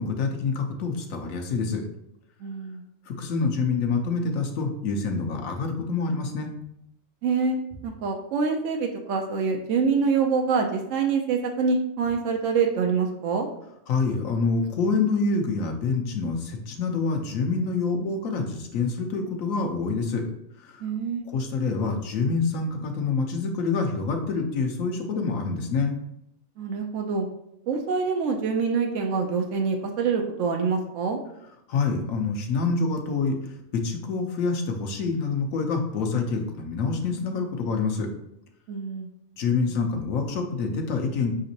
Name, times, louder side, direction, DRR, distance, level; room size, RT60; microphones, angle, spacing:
voice 1, 0.0-1.8 3.1-6.5 13.9-20.2 20.6-20.8 21.3-25.9 31.7-38.1 39.4-41.3, left 4 dB, 85° left, 3 dB, 1.2 m, -26 dB
voice 2, 2.4-2.8 7.2-7.6 7.8-13.5 20.8-21.2 26.6-27.3 27.7-31.2 38.7-39.1, right 5 dB, 75° right, 2 dB, 0.9 m, -25 dB
5.1 x 3.8 x 2.7 m, 0.80 s
omnidirectional pair, 1.4 m